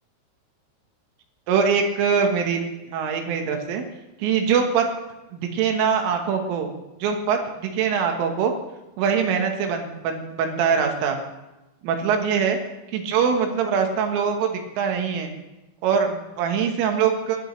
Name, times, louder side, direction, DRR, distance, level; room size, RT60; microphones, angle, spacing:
voice 1, 1.5-2.6 2.9-3.8 4.2-4.9 5.3-6.7 7.0-8.5 9.0-11.2 11.8-12.6 12.9-15.3 15.8-17.4, right 6 dB, 80° right, 4 dB, 3.9 m, -23 dB
21.0 x 13.0 x 3.3 m, 1.0 s
omnidirectional pair, 5.7 m